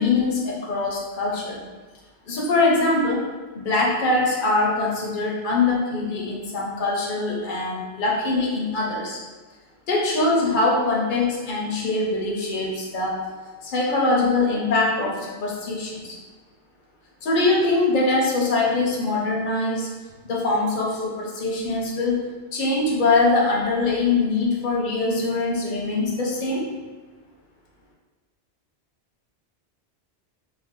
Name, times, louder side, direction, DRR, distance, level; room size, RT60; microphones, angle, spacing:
voice 1, 0.0-1.6 2.2-3.3 3.5-9.2 9.9-13.2 13.6-16.1 17.2-19.9 20.2-26.6, left 3 dB, 55° left, -2 dB, 0.8 m, -23 dB
2.6 x 2.2 x 3.5 m, 1.3 s
omnidirectional pair, 1.1 m